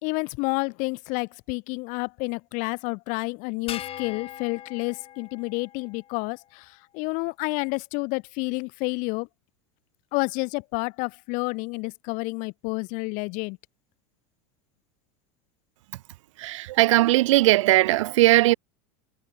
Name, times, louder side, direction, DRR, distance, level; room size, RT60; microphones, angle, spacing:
voice 1, 0.0-9.3 10.1-13.6, left 29 dB, 55° left, 1.6 m, -30 dB
sound 1, 3.7-6.2, left 12 dB, 35° left, 7.1 m, -40 dB
voice 2, 16.4-18.5, right 17 dB, 80° right, 0.6 m, -19 dB
supercardioid pair, 125°, 16 cm